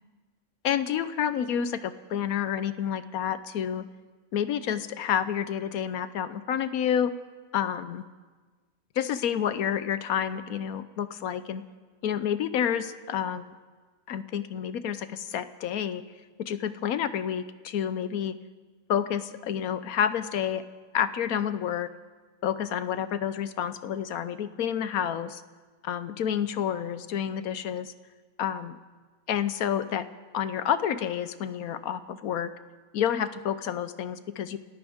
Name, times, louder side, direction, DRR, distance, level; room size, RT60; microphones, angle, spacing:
voice 1, 0.6-3.9 4.3-7.1 7.5-8.0 9.0-11.6 12.0-13.5 14.1-16.0 16.5-18.4 18.9-20.6 20.9-21.9 22.4-25.4 25.8-27.9 28.4-28.8 29.3-30.1 30.3-32.5 32.9-34.6, left 9 dB, 85° left, 13 dB, 1.2 m, -29 dB
28.0 x 14.0 x 3.6 m, 1.4 s
omnidirectional pair, 1.5 m